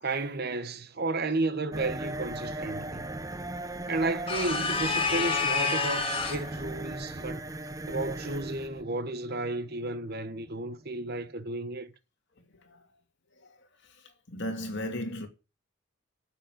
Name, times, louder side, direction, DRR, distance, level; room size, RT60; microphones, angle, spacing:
voice 1, 0.0-3.1 3.9-7.5 7.9-11.9, right 2 dB, 50° right, 1.2 m, -32 dB
sound 1, 1.7-11.3, right 2 dB, 15° right, 0.7 m, -38 dB
sound 2, 4.3-6.5, left 4 dB, 25° left, 1.9 m, -28 dB
voice 2, 14.3-15.3, left 1 dB, 55° left, 2.7 m, -35 dB
9.1 x 7.7 x 9.2 m
head